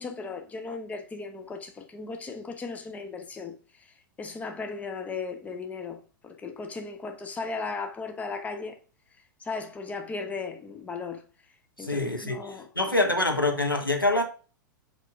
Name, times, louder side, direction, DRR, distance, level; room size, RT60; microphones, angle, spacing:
voice 1, 0.0-3.5 3.8-8.8 9.4-11.2 11.8-13.0, left 4 dB, 15° left, 0.8 m, -36 dB
voice 2, 11.8-14.2, left 2 dB, 90° left, 1.2 m, -25 dB
4.8 x 4.5 x 5.0 m
figure-of-eight pair, 100°, 11 cm